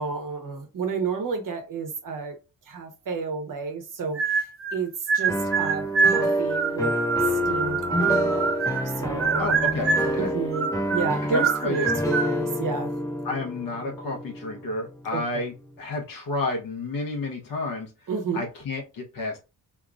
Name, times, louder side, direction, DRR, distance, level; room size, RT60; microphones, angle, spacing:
voice 1, 0.0-2.4 2.7-4.5 4.7-9.4 10.2-12.9 15.1-15.2 18.1-18.4, right 5 dB, 60° right, 1.1 m, -31 dB
sound 1, 4.2-4.8 5.1-8.9 9.2-10.2 10.5-12.3, right 5 dB, 40° right, 0.5 m, -25 dB
sound 2, 5.3-15.2, equal, 10° left, 1.2 m, -28 dB
voice 2, 9.4-10.3 11.3-11.9 13.2-17.9 18.3-19.4, left 2 dB, 65° left, 0.9 m, -31 dB
3.7 x 2.8 x 2.4 m
cardioid pair, 65°, 36 cm